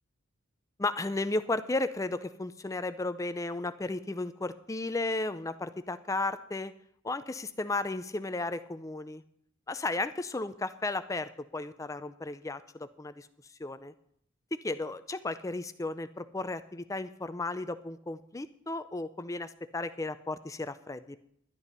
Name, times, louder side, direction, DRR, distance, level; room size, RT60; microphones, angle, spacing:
voice 1, 0.8-6.7 7.0-9.2 9.7-13.3 13.6-13.9 14.5-21.2, left 2 dB, 15° left, 12 dB, 0.4 m, -34 dB
11.5 x 11.0 x 5.5 m, 0.70 s
head